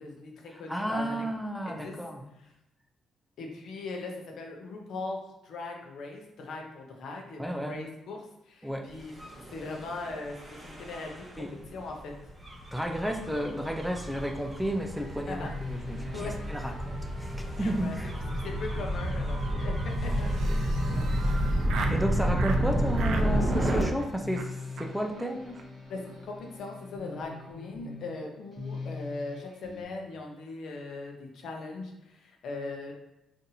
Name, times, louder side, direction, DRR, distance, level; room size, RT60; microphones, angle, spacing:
voice 1, 0.0-1.3 1.7-2.0 2.4-2.5 3.4-9.1 9.5-10.4 10.6-11.4 11.7-12.1 15.3-15.5 15.8-16.4 17.6-18.0 18.4-19.7 20.0-21.0 25.9-32.9, left 3 dB, 70° left, 1 dB, 0.6 m, -39 dB
voice 2, 0.7-2.2 7.4-7.8 8.6-8.9 11.4-11.5 12.7-18.1 21.9-25.6, right 1 dB, 5° right, 3 dB, 0.4 m, -32 dB
Gull seagull / Waves surf / Siren, 9.1-23.8, equal, 20° right, 0.8 m, -30 dB
sound 1, 13.9-29.8, left 3 dB, 15° left, 0.9 m, -44 dB
Laughter, 20.2-22.0 22.4-22.6 22.9-23.3 23.6-24.1 24.3-24.5 24.8-24.9 25.1-25.2 25.5-25.6 25.9-26.2, right 5 dB, 75° right, 0.4 m, -39 dB
3.9 x 2.6 x 2.7 m, 0.91 s
cardioid pair, 90°, 0 cm